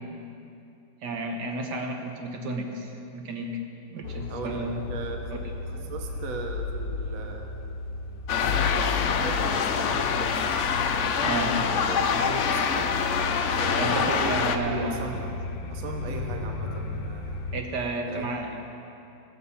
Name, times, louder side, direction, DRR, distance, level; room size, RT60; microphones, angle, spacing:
voice 1, 1.0-3.6 3.9-4.8 5.4-5.5 11.2-11.6 13.8-15.1 17.5-18.6, right 2 dB, 75° right, 3 dB, 1.7 m, -32 dB
sound 1, 4.0-17.6, left 3 dB, 85° left, 1.4 m, -34 dB
voice 2, 4.3-7.6 8.4-10.5 11.2-13.0 13.5-17.5 18.0-18.3, right 3 dB, 60° right, 3 dB, 1.3 m, -38 dB
sound 2, 8.3-14.6, left 6 dB, 60° left, 0.8 m, -25 dB
sound 3, 15.7-17.5, left 3 dB, 25° left, 0.9 m, -42 dB
17.0 x 6.9 x 7.0 m, 2.7 s
omnidirectional pair, 1.8 m